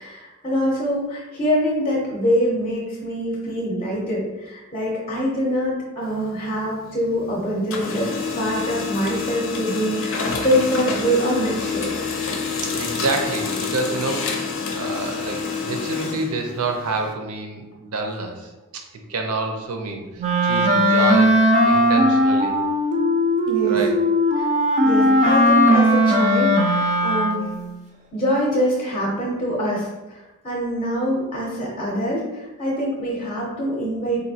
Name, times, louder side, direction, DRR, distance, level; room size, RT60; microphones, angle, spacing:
voice 1, 0.0-8.1 8.3-11.9 23.5-23.8 24.4-24.5 24.8-27.5 28.1-30.2 30.4-34.2, equal, 25° left, -3 dB, 0.6 m, -24 dB
Printer, 6.0-7.3 7.6-17.1, left 5 dB, 60° left, 0.6 m, -28 dB
voice 2, 12.6-22.6 23.6-23.9, right 3 dB, 75° right, 3 dB, 0.6 m, -28 dB
Wind instrument woodwind instrument, 20.2-27.6, equal, 30° right, 0.4 m, -18 dB
4.0 x 2.6 x 2.7 m, 1.1 s
head